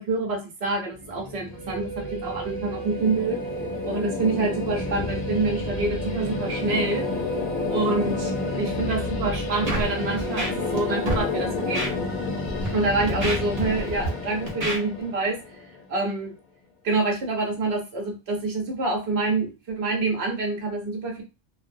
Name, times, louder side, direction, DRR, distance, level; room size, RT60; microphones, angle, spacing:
voice 1, 0.0-3.4 3.9-7.1 7.7-12.0 12.7-15.4 15.9-16.3 16.8-21.2, right 3 dB, 80° right, 1 dB, 1.0 m, -27 dB
sound 1, 0.9-16.0, left 4 dB, 50° left, 0.6 m, -30 dB
Wind instrument woodwind instrument, 1.5-10.8, right 7 dB, 20° right, 0.9 m, -36 dB
Scratching (performance technique), 9.7-9.9 10.2-10.8 11.1-11.2 11.7-11.9 12.5-12.7 13.1-14.1 14.5-14.8, right 1 dB, 55° right, 0.9 m, -28 dB
2.4 x 2.1 x 2.5 m, 0.30 s
omnidirectional pair, 1.1 m